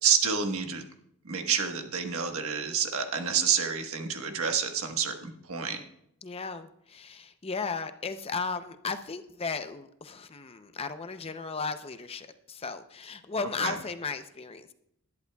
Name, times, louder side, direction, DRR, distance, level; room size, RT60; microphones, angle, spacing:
voice 1, 0.0-0.8 1.2-5.8 13.6-13.8, right 7 dB, 75° right, 5 dB, 1.3 m, -28 dB
voice 2, 6.2-14.7, left 4 dB, 25° left, 9 dB, 0.6 m, -35 dB
20.0 x 11.0 x 2.3 m, 0.74 s
head